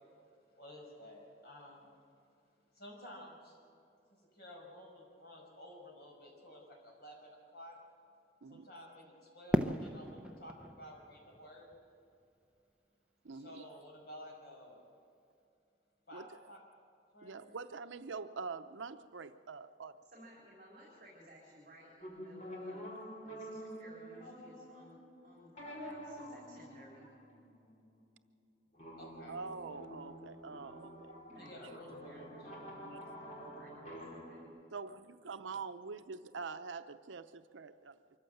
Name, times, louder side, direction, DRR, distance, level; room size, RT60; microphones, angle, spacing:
voice 1, 0.5-1.9 2.7-3.6 4.1-7.8 8.5-11.7 13.3-14.8 16.1-16.6 17.1-17.5 29.0-29.4 31.4-32.5, left 1 dB, 55° left, 5.6 m, -53 dB
Fireworks, 9.5-12.6, equal, 5° right, 0.7 m, -37 dB
voice 2, 13.2-13.7 16.1-16.4 17.2-20.0 29.3-31.2 32.8-33.0 34.7-38.0, right 4 dB, 85° right, 0.6 m, -45 dB
voice 3, 20.1-27.1 31.2-32.7 33.1-34.5, equal, 40° right, 4.2 m, -58 dB
sound 1, 22.0-28.0 28.7-34.4, equal, 40° left, 4.7 m, -48 dB
24.5 x 14.5 x 7.9 m
head